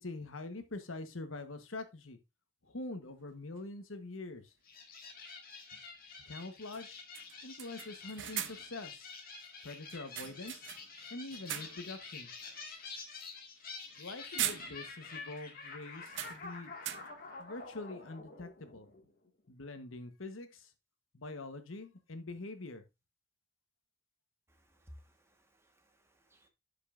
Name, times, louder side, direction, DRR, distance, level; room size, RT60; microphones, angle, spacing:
voice 1, 0.0-2.2 2.6-4.5 6.3-7.0 7.4-9.1 9.6-10.7 11.1-12.3 14.0-16.7 17.4-18.9 19.5-20.7 21.1-22.8, left 2 dB, 90° left, 9 dB, 1.2 m, -44 dB
sound 1, 3.6-3.7 5.7-5.8 6.2-6.3 6.7-6.9 7.1-8.8 9.9-11.0 11.3-12.0 12.4-12.6 13.9-14.1 14.4-15.1 15.4-15.5 16.1-17.3, right 11 dB, 65° right, 0.7 m, -41 dB
sound 2, 4.6-19.3, left 4 dB, 50° left, 2.0 m, -48 dB
voice 2, 24.5-26.5, equal, 15° right, 4 dB, 1.4 m, -59 dB
12.0 x 5.4 x 2.5 m, 0.23 s
head